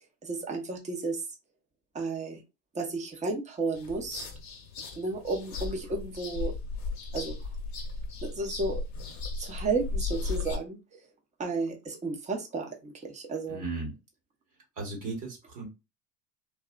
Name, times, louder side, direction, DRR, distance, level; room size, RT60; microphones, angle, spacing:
voice 1, 0.2-1.2 1.9-2.4 2.7-4.3 5.0-6.5 7.1-7.4 8.2-8.8 9.4-10.8 11.4-13.6, right 3 dB, 15° right, 2 dB, 0.7 m, -32 dB
sound 1, 3.7-10.6, left 3 dB, 35° left, 1.0 m, -36 dB
voice 2, 13.5-13.9 14.8-15.7, right 3 dB, 40° right, 1 dB, 1.3 m, -36 dB
2.7 x 2.3 x 2.3 m, 0.25 s
hypercardioid pair, 90°, 50 cm